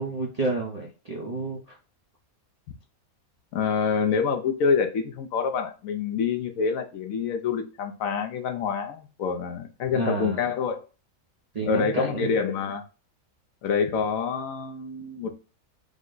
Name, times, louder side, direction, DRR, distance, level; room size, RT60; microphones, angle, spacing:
voice 1, 0.0-1.6 9.9-10.4 11.5-12.3, right 3 dB, 40° right, -2 dB, 0.6 m, -30 dB
voice 2, 3.5-10.8 11.6-12.8 13.6-15.4, left 6 dB, 70° left, 6 dB, 1.1 m, -26 dB
5.1 x 2.1 x 3.8 m, 0.33 s
omnidirectional pair, 1.5 m